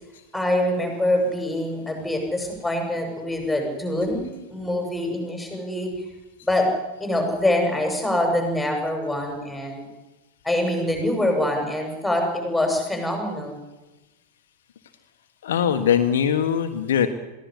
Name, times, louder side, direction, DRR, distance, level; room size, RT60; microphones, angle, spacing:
voice 1, 0.3-5.9 6.4-6.7 7.0-9.8 10.4-13.6, left 1 dB, 5° left, 3 dB, 7.2 m, -24 dB
voice 2, 15.4-17.1, left 8 dB, 60° left, 7 dB, 1.5 m, -21 dB
22.0 x 16.0 x 10.0 m, 1.1 s
figure-of-eight pair, 90°, 0 cm